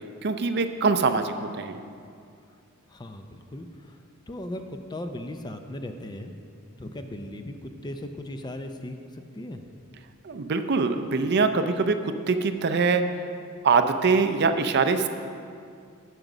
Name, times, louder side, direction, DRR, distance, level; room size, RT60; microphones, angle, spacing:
voice 1, 0.2-1.8 10.2-13.0 13.6-15.1, right 4 dB, 50° right, 8 dB, 0.5 m, -23 dB
voice 2, 2.9-6.3 6.8-9.6, left 1 dB, 20° left, 7 dB, 0.5 m, -38 dB
9.0 x 6.6 x 6.0 m, 2.4 s
head